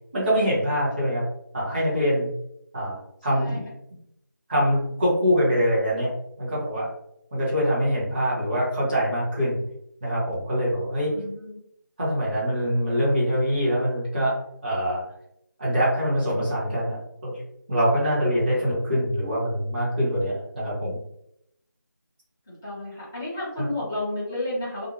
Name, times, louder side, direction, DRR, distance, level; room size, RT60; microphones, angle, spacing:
voice 1, 0.1-1.2 1.5-2.3 2.7-3.6 4.5-6.1 6.4-6.9 7.3-9.6 10.0-11.1 12.0-14.4 14.6-15.0 15.6-17.3 17.7-21.0 23.6-23.7, equal, 30° right, -7 dB, 1.0 m, -24 dB
voice 2, 3.3-3.7 11.1-11.6 22.6-24.9, left 1 dB, 5° left, -11 dB, 0.4 m, -32 dB
2.7 x 2.0 x 2.6 m, 0.75 s
figure-of-eight pair, 165°, 11 cm